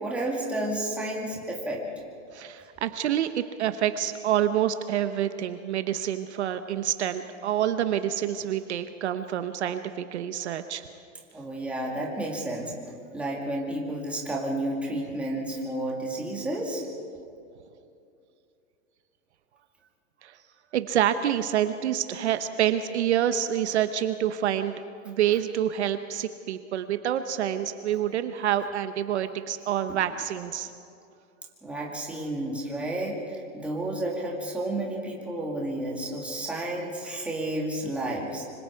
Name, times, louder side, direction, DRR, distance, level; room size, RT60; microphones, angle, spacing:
voice 1, 0.0-1.9 11.3-12.7 13.1-16.8 29.9-30.0 31.6-38.4, right 1 dB, 5° right, -3 dB, 2.2 m, -31 dB
voice 2, 2.3-10.8 20.2-20.4 20.7-24.8 25.0-30.7, right 10 dB, 55° right, 10 dB, 1.0 m, -27 dB
26.0 x 25.5 x 4.7 m, 2.5 s
supercardioid pair, 175°, 40 cm